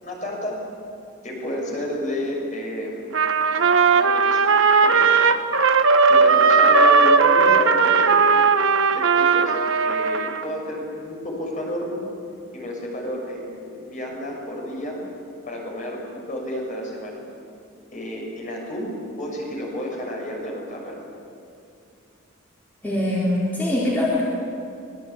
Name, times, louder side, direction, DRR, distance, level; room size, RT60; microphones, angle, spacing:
voice 1, 0.0-0.6 1.2-3.2 3.9-4.4 4.8-5.1 6.1-8.3 8.9-9.6 9.8-12.0 12.5-15.0 15.4-17.2 17.9-20.9, left 1 dB, 35° left, -1 dB, 6.8 m, -31 dB
Trumpet, 3.1-10.5, right 5 dB, 65° right, 1.2 m, -17 dB
voice 2, 22.8-24.2, left 1 dB, 10° left, -6 dB, 3.9 m, -22 dB
25.0 x 21.0 x 8.8 m, 2.6 s
head